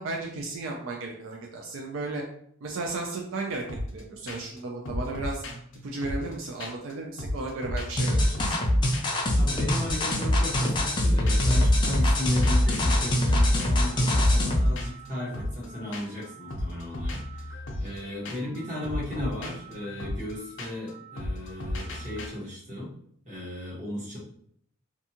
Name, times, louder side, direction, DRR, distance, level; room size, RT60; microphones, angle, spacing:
voice 1, 0.0-2.2 2.6-3.6 3.9-5.4 5.8-8.6, right 3 dB, 80° right, 0 dB, 0.4 m, -34 dB
sound 1, 3.7-4.0 4.3-4.6 4.8-6.9 7.2-8.7 8.9-9.2 9.5-11.6 11.8-22.3, left 1 dB, 65° left, 0.6 m, -36 dB
sound 2, 8.0-14.7, left 1 dB, 25° left, 0.4 m, -23 dB
voice 2, 9.3-22.9 23.2-24.2, left 1 dB, 35° right, -7 dB, 1.2 m, -35 dB
2.6 x 2.3 x 2.8 m, 0.66 s
head